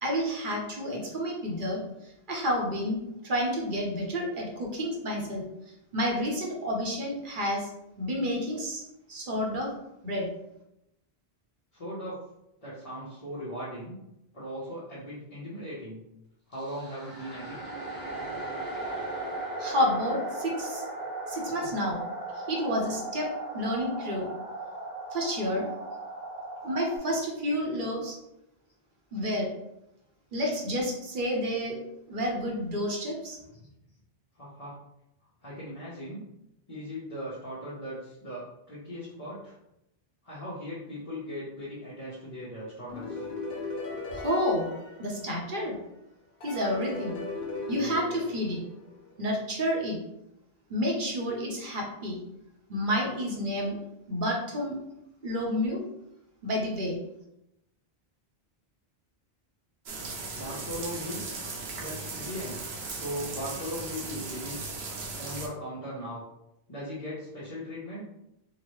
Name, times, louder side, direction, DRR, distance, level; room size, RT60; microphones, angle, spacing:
voice 1, 0.0-3.0 3.2-5.4 5.9-7.7 8.0-8.8 9.1-9.7 10.0-10.3 19.6-20.8 21.3-22.0 22.3-24.3 25.1-25.7 26.6-28.1 29.1-29.5 30.3-31.8 32.1-33.4 44.1-44.7 45.0-45.8 46.4-47.2 47.7-48.6 49.2-50.0 50.7-52.2 52.7-53.8 54.1-54.8 55.2-55.8 56.4-57.0, equal, 55° right, -1 dB, 1.0 m, -30 dB
voice 2, 11.7-12.2 12.6-14.0 14.3-16.0 16.5-17.8 33.5-33.7 34.4-34.8 35.4-36.2 36.7-39.5 40.2-43.2 60.3-61.2 61.8-62.6 62.9-64.6 65.2-66.2 66.7-68.1, equal, 40° left, -9 dB, 0.9 m, -38 dB
sound 1, 16.5-27.0, right 2 dB, 10° left, 1.2 m, -37 dB
sound 2, 42.9-45.7 46.4-49.2, left 3 dB, 65° left, 1.0 m, -38 dB
sound 3, 59.9-65.5, right 3 dB, 85° right, 0.9 m, -37 dB
3.9 x 2.1 x 3.1 m, 0.85 s
omnidirectional pair, 1.0 m